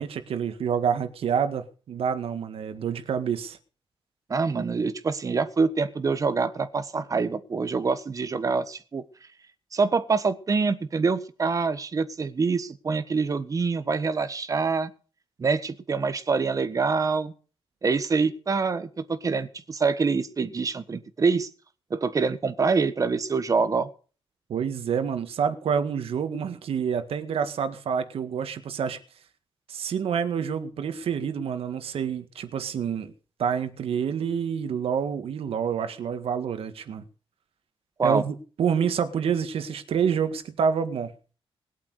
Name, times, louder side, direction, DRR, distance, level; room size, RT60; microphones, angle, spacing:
voice 1, 0.0-3.6 24.5-29.0 29.7-33.1 33.4-37.0 38.0-41.1, right 7 dB, 75° right, 1.9 m, -27 dB
voice 2, 4.3-9.0 9.7-14.9 15.4-17.3 17.8-21.5 21.9-23.9 38.0-38.2, right 4 dB, 35° right, 1.4 m, -25 dB
20.5 x 8.4 x 6.7 m
wide cardioid pair, 140°, 10 cm